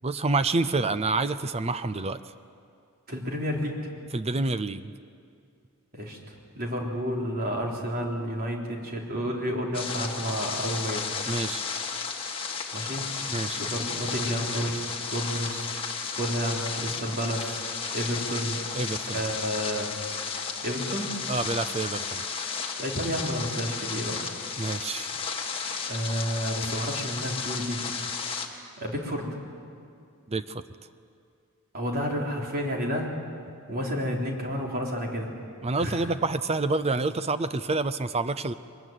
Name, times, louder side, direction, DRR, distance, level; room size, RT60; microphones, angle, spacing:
voice 1, 0.0-2.2 4.1-4.9 11.3-11.6 13.3-13.6 18.7-19.2 21.3-22.2 24.6-25.1 30.3-30.6 35.6-38.5, right 3 dB, 30° right, 12 dB, 0.6 m, -28 dB
voice 2, 3.1-3.8 5.9-6.2 6.5-11.1 12.7-13.1 13.3-14.8 15.1-15.7 16.1-17.6 17.9-18.6 19.1-19.9 20.6-21.2 22.8-24.3 25.9-27.8 28.5-29.3 31.7-33.1 33.7-35.3 35.8-36.1, equal, 45° right, 0 dB, 3.7 m, -30 dB
sound 1, 9.7-28.5, left 5 dB, 25° left, 1.9 m, -33 dB
22.5 x 21.0 x 9.3 m, 2.4 s
head